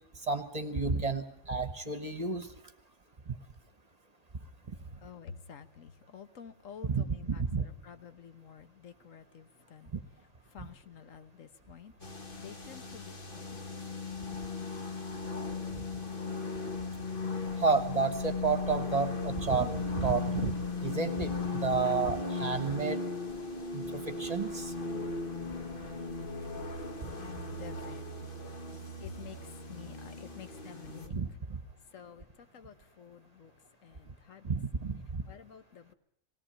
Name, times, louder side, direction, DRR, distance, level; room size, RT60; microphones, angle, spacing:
voice 1, 0.2-2.5 3.3-3.4 6.8-7.6 9.9-10.0 10.6-10.7 17.6-23.0 23.7-24.7 27.0-27.1 31.1-31.6 34.4-35.2, right 4 dB, 30° right, 10 dB, 1.3 m, -31 dB
voice 2, 4.9-9.9 10.5-11.9 12.4-13.6 27.1-28.0 29.0-29.4 29.7-31.2 31.9-33.5 33.8-34.5 35.3-35.9, left 7 dB, 80° left, 11 dB, 1.5 m, -50 dB
sound 1, 12.0-31.1, left 3 dB, 45° left, 1.9 m, -37 dB
19.5 x 17.5 x 8.8 m, 0.66 s
omnidirectional pair, 1.3 m